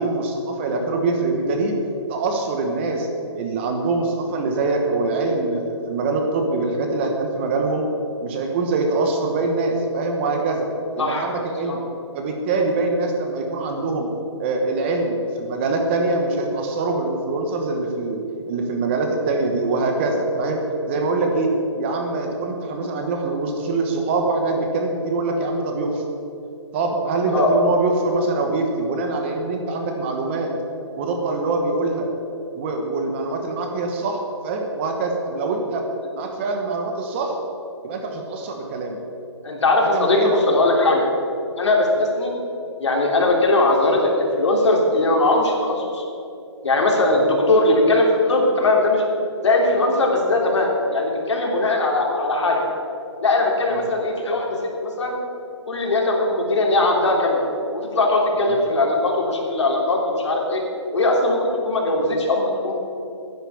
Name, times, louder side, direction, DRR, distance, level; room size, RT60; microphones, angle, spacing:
voice 1, 0.0-1.8 2.1-3.1 3.3-7.9 8.2-10.7 10.9-11.8 12.1-14.1 14.4-18.2 18.5-26.0 26.7-30.5 31.0-32.1 32.5-35.9 36.2-37.4 37.8-39.0 39.9-40.4 47.1-47.2 53.7-53.9, right 3 dB, 25° right, 3 dB, 1.2 m, -24 dB
voice 2, 39.4-41.1 41.6-42.3 42.8-46.0 46.6-49.1 49.4-52.6 53.2-55.2 55.7-57.5 57.7-60.6 60.9-62.7, left 2 dB, 70° left, -1 dB, 3.2 m, -20 dB
10.0 x 10.0 x 7.1 m, 2.8 s
hypercardioid pair, 165°, 15 cm